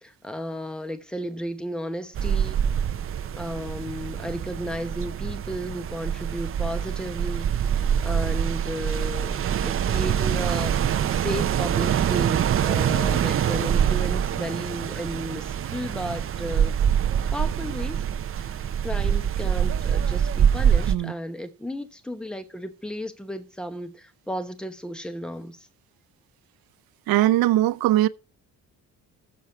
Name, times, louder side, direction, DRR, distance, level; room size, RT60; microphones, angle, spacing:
voice 1, 0.0-2.6 3.2-16.7 17.3-18.0 18.4-18.6 18.8-25.7, equal, ahead, 0.9 m, -34 dB
sound 1, 2.2-21.0, right 9 dB, 40° right, 0.5 m, -25 dB
voice 2, 27.1-28.1, right 15 dB, 85° right, 0.6 m, -20 dB
7.1 x 6.0 x 6.8 m
cardioid pair, 135°, 35 cm